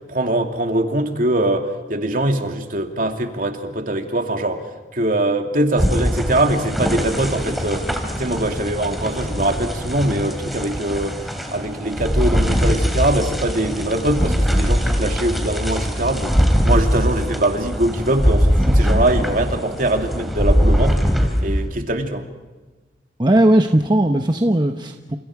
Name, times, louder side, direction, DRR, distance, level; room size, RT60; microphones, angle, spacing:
voice 1, 0.1-4.6 4.9-7.9 8.2-11.2 11.5-16.3 16.6-21.0 21.4-22.2, right 1 dB, 50° right, 4 dB, 2.8 m, -22 dB
sound 1, 5.8-21.7, equal, ahead, 3.2 m, -21 dB
voice 2, 23.2-25.2, right 1 dB, 25° right, 5 dB, 1.1 m, -17 dB
30.0 x 29.0 x 4.9 m, 1.3 s
head